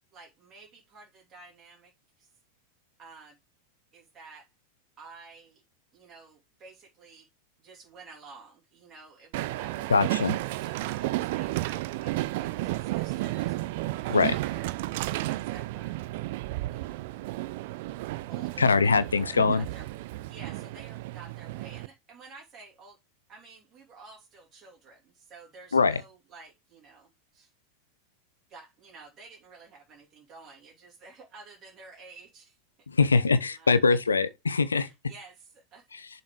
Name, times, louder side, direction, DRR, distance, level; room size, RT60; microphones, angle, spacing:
voice 1, 0.1-2.3 3.0-3.4 3.9-4.5 5.0-5.6 5.9-7.3 7.6-16.1 16.7-17.1 18.3-19.9 20.3-23.0 23.3-27.5 28.5-32.6 33.0-33.8 34.8-35.9, right 4 dB, 25° right, 3.0 m, -51 dB
Train, 9.3-21.9, right 18 dB, 50° right, 0.4 m, -32 dB
voice 2, 9.9-10.4 14.1-14.3 18.6-19.6 25.7-26.0 32.9-34.9 35.9-36.0, left 4 dB, 75° left, 0.7 m, -23 dB
7.1 x 4.3 x 4.8 m
figure-of-eight pair, 90°, 0 cm